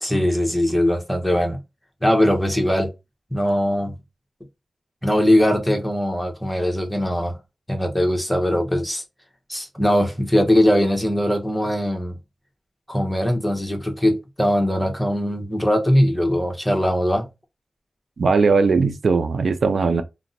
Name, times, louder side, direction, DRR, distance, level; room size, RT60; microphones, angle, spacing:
voice 1, 0.0-1.6 2.0-2.9 3.3-3.9 5.0-7.3 7.7-9.0 9.5-12.1 12.9-17.3, equal, 10° left, 0.9 m, -20 dB
voice 2, 18.2-20.0, right 4 dB, 65° right, 0.4 m, -19 dB
2.5 x 2.0 x 3.9 m
cardioid pair, 65°, 0 cm